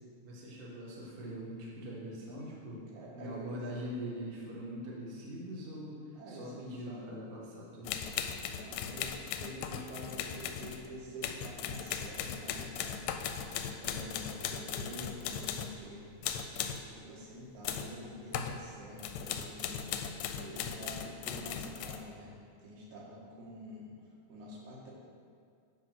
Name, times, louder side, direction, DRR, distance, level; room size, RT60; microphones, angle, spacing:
voice 1, 0.2-2.8 3.1-6.0 6.3-8.0, equal, 45° right, -4 dB, 0.7 m, -42 dB
voice 2, 2.9-3.6 6.1-7.2 8.5-13.0 13.8-16.1 16.4-16.5 16.9-19.8 20.3-23.9 24.3-24.9, equal, 75° right, -4 dB, 2.9 m, -47 dB
sound 1, 7.8-15.9 16.2-16.9 17.6-18.0 18.3-18.6 19.0-22.0, left 8 dB, 80° left, 1.7 m, -38 dB
10.5 x 3.7 x 6.1 m, 2.2 s
omnidirectional pair, 3.5 m